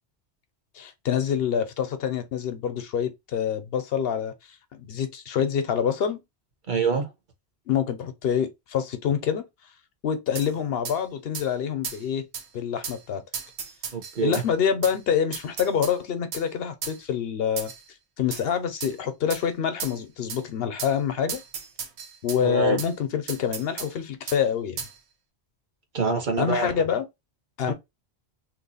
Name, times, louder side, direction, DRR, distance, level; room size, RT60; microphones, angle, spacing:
voice 1, 0.7-4.3 4.7-6.2 7.7-9.4 10.0-12.3 12.5-13.2 14.2-17.7 18.2-21.4 22.2-24.8 26.4-27.0 27.6-27.7, left 8 dB, 70° left, 0.8 m, -26 dB
voice 2, 6.7-7.1 13.9-14.4 22.4-22.8 25.9-26.8 27.6-27.7, right 5 dB, 50° right, 0.9 m, -26 dB
sound 1, 10.3-10.5 10.8-11.0 11.3-11.5 11.8-12.0 12.3-12.5 12.8-13.0 13.3-14.5 14.8-15.0 15.3-16.0 16.3-16.5 16.8-17.0 17.6-17.8 18.3-18.5 18.8-18.9 19.3-19.4 19.8-20.0 20.3-20.4 20.8-20.9 21.3-22.4 22.8-22.9 23.3-23.9 24.3-24.4 24.8-24.9, right 6 dB, 80° right, 1.0 m, -35 dB
2.9 x 2.2 x 3.9 m
omnidirectional pair, 1.1 m